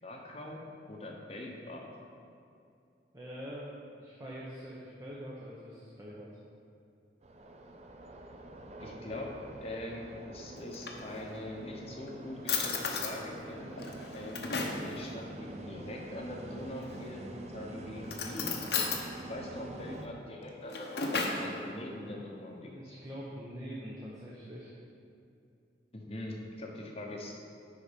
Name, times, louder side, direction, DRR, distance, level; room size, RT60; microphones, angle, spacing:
voice 1, 0.0-0.6 0.9-1.9 8.8-9.3 9.6-13.8 14.1-18.6 19.3-22.7 25.9-27.3, left 1 dB, 35° left, 0 dB, 0.9 m, -42 dB
voice 2, 3.1-6.3 19.8-20.1 22.6-24.7, equal, 20° right, -6 dB, 0.9 m, -44 dB
sound 1, 7.2-20.1, right 2 dB, 35° right, 0.5 m, -46 dB
Drawer open or close, 10.6-11.5 12.1-12.2 12.5-13.2 13.8-14.9 16.7-17.3 18.0-19.0 20.4-21.5, left 4 dB, 65° left, 0.9 m, -34 dB
9.8 x 4.2 x 5.2 m, 2.6 s
head